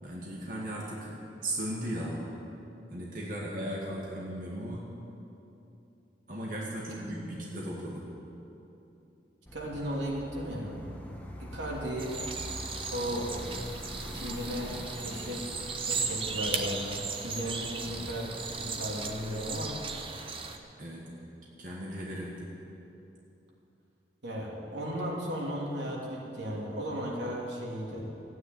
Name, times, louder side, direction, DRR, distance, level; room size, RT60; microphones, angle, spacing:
voice 1, 0.0-2.2 2.9-4.9 6.3-8.1 15.9-16.0 16.3-16.4 20.8-21.2 21.6-22.5, right 1 dB, 45° right, -4 dB, 2.1 m, -37 dB
voice 2, 6.9-7.3 9.5-10.8 11.4-12.2 12.9-13.3 14.1-15.5 15.9-19.8 24.2-28.1, equal, 85° right, -3 dB, 3.0 m, -35 dB
sound 1, 9.5-19.8, left 1 dB, 10° left, 1.3 m, -44 dB
sound 2, 12.0-20.6, right 5 dB, 30° right, 0.8 m, -37 dB
13.5 x 9.4 x 9.3 m, 2.9 s
head